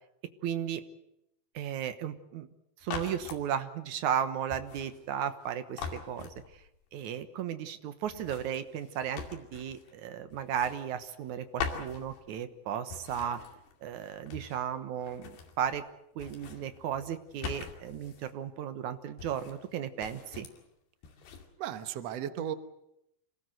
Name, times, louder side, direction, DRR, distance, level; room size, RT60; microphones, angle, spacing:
voice 1, 0.4-0.8 1.5-2.5 2.8-6.3 6.9-13.4 13.8-15.9 16.2-20.5, right 9 dB, 65° right, 10 dB, 2.0 m, -35 dB
sound 1, 2.8-3.5 4.5-5.5 5.8-6.8 8.1-10.0 10.3-11.3 11.6-12.6 12.9-14.7 15.0-15.9 16.1-18.3 19.2-19.7 20.0-20.6 21.0-21.5, left 6 dB, 75° left, 4.5 m, -43 dB
voice 2, 21.6-22.5, right 10 dB, 90° right, 10 dB, 1.4 m, -35 dB
26.5 x 18.5 x 7.9 m, 0.80 s
omnidirectional pair, 4.8 m